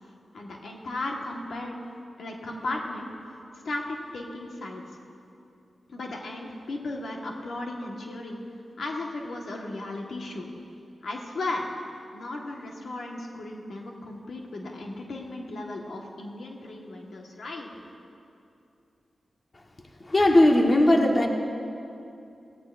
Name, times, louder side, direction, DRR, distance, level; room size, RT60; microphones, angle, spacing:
voice 1, 0.3-1.8 2.2-3.1 3.6-5.0 5.9-8.4 8.8-10.5 11.0-11.7 12.1-17.7, left 2 dB, 80° left, 0 dB, 1.4 m, -35 dB
voice 2, 20.0-21.3, left 1 dB, 40° left, 2 dB, 1.3 m, -18 dB
17.0 x 16.0 x 2.5 m, 2.6 s
cardioid pair, 55°, 0 cm